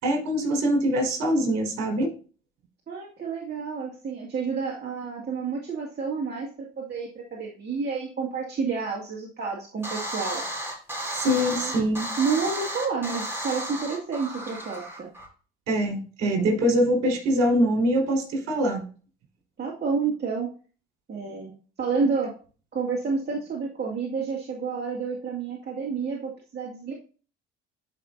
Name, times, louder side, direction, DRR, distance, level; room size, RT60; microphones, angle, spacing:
voice 1, 0.0-2.1 11.1-12.1 15.7-18.8, equal, 55° right, 2 dB, 4.6 m, -23 dB
voice 2, 2.9-6.5 6.8-10.4 11.4-11.8 12.2-15.1 19.6-20.5 21.1-21.5 21.8-22.3 22.7-26.9, right 5 dB, 30° right, -3 dB, 2.1 m, -29 dB
sound 1, 9.8-15.3, right 1 dB, 5° right, 4.4 m, -33 dB
12.0 x 5.4 x 2.7 m, 0.37 s
hypercardioid pair, 70°, 32 cm